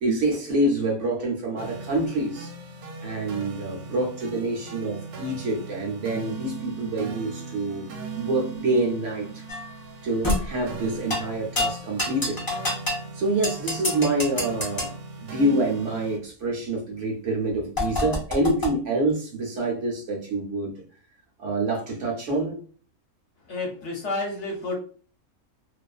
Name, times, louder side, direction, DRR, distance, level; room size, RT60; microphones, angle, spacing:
voice 1, 0.0-2.5 3.0-7.9 8.1-9.3 10.0-12.4 13.1-14.9 15.2-20.8 21.4-22.6, right 2 dB, 65° right, 0.9 m, -26 dB
sound 1, 1.6-16.2, right 4 dB, 85° right, 1.1 m, -38 dB
sound 2, 9.5-9.7 10.2-10.5 11.1-11.3 11.5-13.0 13.4-14.9 17.8-18.7, left 2 dB, 30° left, 0.3 m, -27 dB
voice 2, 23.5-24.7, left 2 dB, 60° left, 0.9 m, -30 dB
2.4 x 2.4 x 2.3 m
omnidirectional pair, 1.5 m